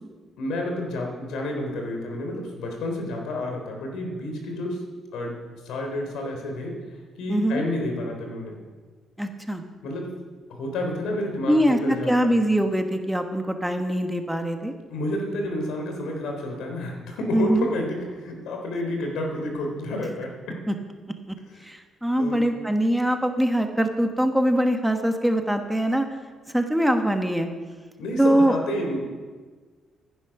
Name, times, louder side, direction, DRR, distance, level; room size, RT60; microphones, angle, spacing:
voice 1, 0.4-4.8 5.1-6.7 7.2-8.6 9.8-10.1 10.5-12.4 14.9-20.6 21.5-21.7 22.2-22.4 28.0-29.1, left 1 dB, 85° left, 2 dB, 3.5 m, -30 dB
voice 2, 7.3-7.6 9.2-9.6 11.5-14.7 17.3-17.7 20.7-20.8 21.3-21.4 21.6-26.1 26.5-27.5 28.2-28.6, right 1 dB, 5° right, 5 dB, 1.4 m, -22 dB
15.5 x 10.0 x 6.0 m, 1.4 s
cardioid pair, 90°, 0 cm